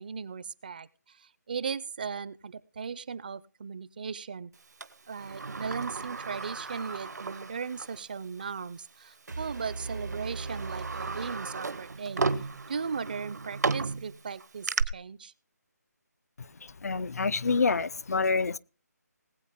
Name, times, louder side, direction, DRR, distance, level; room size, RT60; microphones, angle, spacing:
voice 1, 0.0-4.5 5.1-12.3 12.7-15.3, right 6 dB, 30° right, 0.5 m, -37 dB
Sliding door, 4.8-8.0 8.4-8.5 9.4-9.6 10.1-14.8, right 4 dB, 70° right, 1.0 m, -34 dB
sound 1, 9.3-12.3, right 3 dB, 90° right, 1.8 m, -40 dB
voice 2, 16.6-18.6, left 4 dB, 65° left, 0.6 m, -27 dB
19.5 x 8.2 x 3.5 m
figure-of-eight pair, 165°, 9 cm